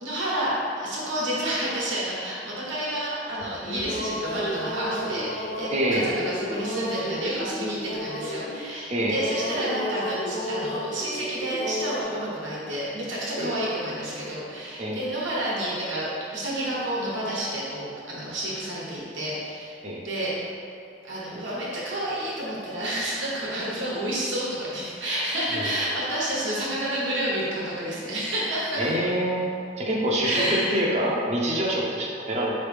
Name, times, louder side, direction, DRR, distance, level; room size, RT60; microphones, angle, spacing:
voice 1, 0.0-19.8 20.0-20.3 21.0-28.9 30.2-30.7, right 1 dB, 85° right, -7 dB, 1.2 m, -29 dB
sound 1, 3.4-8.8 9.0-12.0, equal, 35° left, 0.4 m, -32 dB
voice 2, 5.7-6.2 8.9-9.2 13.4-13.5 14.8-15.0 19.8-20.0 25.5-25.7 28.8-29.4 29.8-32.5, right 1 dB, 35° right, -3 dB, 0.5 m, -25 dB
4.3 x 3.1 x 3.3 m, 2.4 s
head